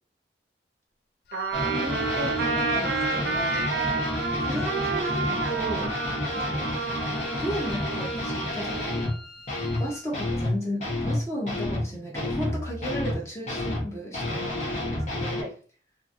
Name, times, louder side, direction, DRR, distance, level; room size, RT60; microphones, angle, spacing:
Wind instrument woodwind instrument, 1.3-10.1, left 1 dB, 60° left, 0.3 m, -42 dB
Trumpet, 1.3-8.4, right 4 dB, 80° right, 0.6 m, -30 dB
sound 1, 1.5-9.2 9.5-9.9 10.1-13.2 13.5-15.4, left 1 dB, 40° left, 1.0 m, -30 dB
voice 1, 1.6-3.6 4.7-4.9 5.2-5.4 15.3-15.5, equal, 15° right, -4 dB, 0.4 m, -37 dB
voice 2, 4.4-5.9 6.3-6.8 7.4-9.0 9.8-15.4, equal, 15° left, -3 dB, 0.9 m, -34 dB
2.8 x 2.6 x 2.6 m, 0.42 s
head